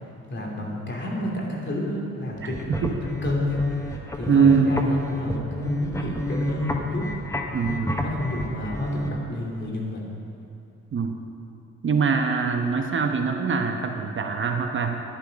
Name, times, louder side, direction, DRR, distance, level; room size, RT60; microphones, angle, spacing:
voice 1, 0.3-7.1 8.0-10.1, left 1 dB, 40° left, -1 dB, 2.9 m, -30 dB
sound 1, 2.3-9.1, equal, 10° left, 1.1 m, -29 dB
voice 2, 4.3-4.7 7.5-8.0 10.9-11.1 11.8-15.0, right 5 dB, 40° right, 4 dB, 1.0 m, -23 dB
12.0 x 10.5 x 5.2 m, 2.7 s
cardioid pair, 90°, 30 cm